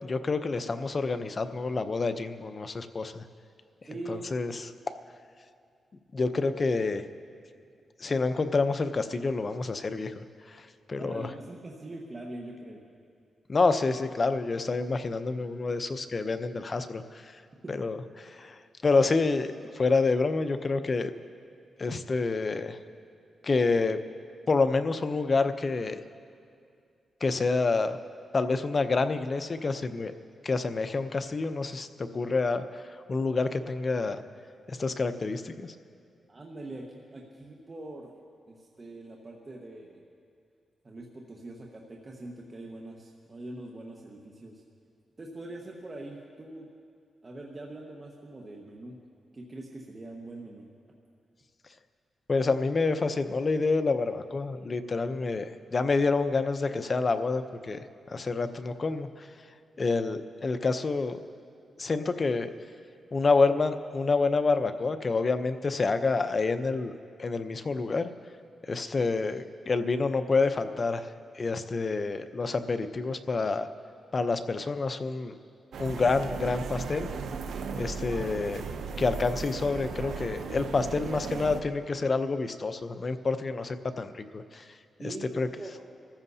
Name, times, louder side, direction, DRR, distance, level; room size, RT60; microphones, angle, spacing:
voice 1, 0.0-3.2 4.1-4.6 6.1-7.0 8.0-11.3 13.5-17.4 17.7-21.1 21.8-22.8 23.4-24.0 24.5-26.0 27.2-28.0 28.3-30.1 30.4-34.2 34.7-35.7 52.3-59.3 59.8-61.2 61.8-62.5 63.1-66.9 67.2-68.1 68.7-73.7 74.1-75.3 75.8-77.1 77.7-78.6 79.0-84.7 85.0-85.5, left 3 dB, 45° left, 10 dB, 0.7 m, -28 dB
voice 2, 3.9-4.4 11.0-12.8 36.3-38.1 38.5-40.0 40.8-44.6 45.2-46.7 47.2-49.0 49.3-50.7 85.0-85.7, right 2 dB, 35° right, -2 dB, 1.4 m, -43 dB
sound 1, 75.7-81.6, right 5 dB, 80° right, 0.8 m, -36 dB
25.0 x 14.5 x 2.8 m, 2.4 s
cardioid pair, 70°, 0 cm